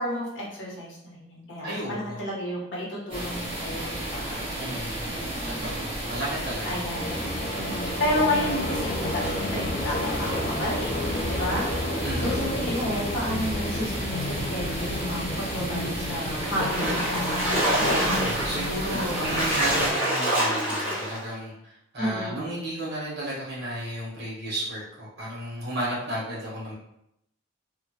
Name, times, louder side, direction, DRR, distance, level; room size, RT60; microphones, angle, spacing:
voice 1, 0.0-4.4 5.0-5.7 6.0-6.2 6.6-7.2 7.5-17.4 22.0-22.6, left 1 dB, 65° left, -5 dB, 1.1 m, -32 dB
voice 2, 1.6-2.2 4.5-5.0 5.4-6.8 12.0-12.3 18.0-26.7, right 1 dB, 55° right, -7 dB, 1.4 m, -33 dB
sound 1, 3.1-19.9, right 1 dB, 30° right, 0.9 m, -33 dB
sound 2, 6.8-20.1, left 1 dB, 45° left, 0.5 m, -32 dB
Splash splatter, 16.4-21.3, right 1 dB, 10° right, 1.4 m, -26 dB
2.9 x 2.4 x 2.8 m, 0.79 s
head